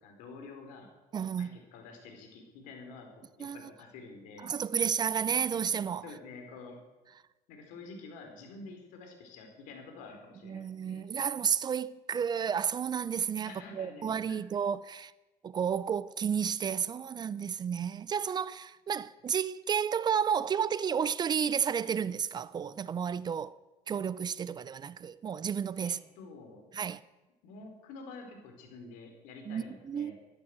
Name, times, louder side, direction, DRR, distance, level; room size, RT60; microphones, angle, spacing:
voice 1, 0.0-0.9 1.4-4.5 6.0-6.8 7.5-11.0 13.5-14.4 25.8-26.7 27.4-30.2, left 3 dB, 80° left, 4.5 m, -48 dB
voice 2, 1.1-1.6 3.4-3.6 4.4-6.0 10.4-15.1 15.4-23.6 23.9-26.0 26.7-27.0 29.5-30.2, right 7 dB, 30° right, 0.5 m, -32 dB
13.5 x 11.5 x 8.2 m
cardioid pair, 115°, 13 cm